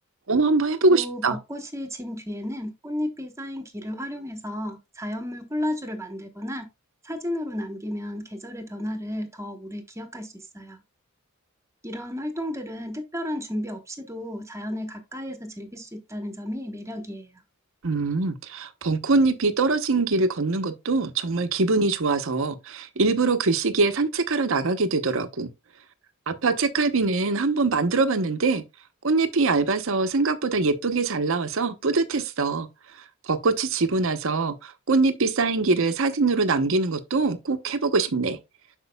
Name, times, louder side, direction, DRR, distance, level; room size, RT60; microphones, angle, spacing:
voice 1, 0.3-1.4 17.8-25.5 26.3-28.6 29.0-32.7 33.2-38.4, right 3 dB, 65° right, 0.8 m, -23 dB
voice 2, 0.9-6.7 7.0-10.8 11.8-17.3, left 1 dB, 15° right, 1.0 m, -33 dB
8.1 x 5.9 x 2.2 m
head